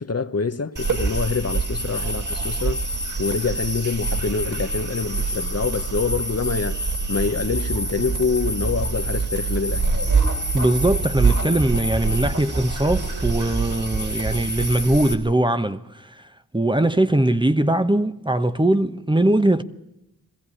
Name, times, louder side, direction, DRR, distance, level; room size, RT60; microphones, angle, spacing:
voice 1, 0.0-2.8 3.2-9.9, left 5 dB, 45° left, 1.1 m, -26 dB
sound 1, 0.8-15.1, right 3 dB, 60° right, 3.7 m, -25 dB
voice 2, 10.5-16.3 16.5-19.6, right 1 dB, 15° right, 1.1 m, -21 dB
22.0 x 15.5 x 10.0 m
cardioid pair, 45°, 35 cm